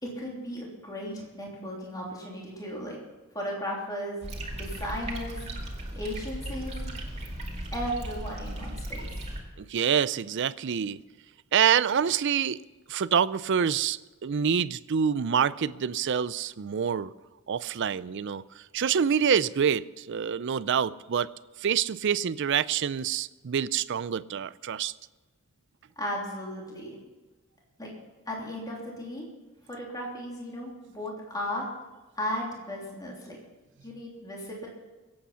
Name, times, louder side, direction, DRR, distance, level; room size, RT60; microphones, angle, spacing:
voice 1, 0.0-3.0 3.3-4.2 4.5-5.4 5.9-6.9 7.7-9.1 26.0-27.0 27.8-27.9 28.3-29.2 29.7-31.6 32.2-33.4 33.8-34.7, equal, 20° left, -3 dB, 3.2 m, -35 dB
sound 1, 4.2-9.4, right 1 dB, 30° right, 2.4 m, -36 dB
voice 2, 9.6-11.0 11.5-12.6 12.9-17.1 17.5-21.3 21.6-24.9, right 7 dB, 55° right, 17 dB, 0.4 m, -26 dB
22.0 x 8.7 x 5.7 m, 1.2 s
head